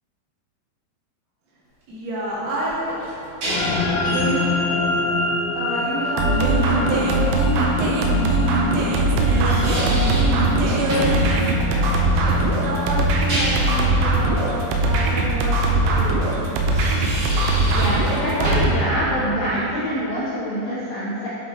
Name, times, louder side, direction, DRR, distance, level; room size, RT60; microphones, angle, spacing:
voice 1, 1.9-3.0 4.1-4.5 5.5-7.3 9.3-9.9 10.7-11.1 11.5-16.3, right 1 dB, 70° right, -8 dB, 3.6 m, -28 dB
sound 1, 2.6-3.9 7.1-7.2 9.2-10.4 10.9-11.2 13.1-13.8 16.6-18.1 18.4-18.8, right 1 dB, 45° right, 1.7 m, -28 dB
sound 2, 3.5-14.1, left 4 dB, 65° left, 2.2 m, -27 dB
sound 3, 6.2-18.7, right 2 dB, 90° right, 3.0 m, -20 dB
voice 2, 17.7-21.3, equal, 80° left, -8 dB, 1.8 m, -25 dB
8.1 x 7.8 x 3.1 m, 2.9 s
omnidirectional pair, 5.1 m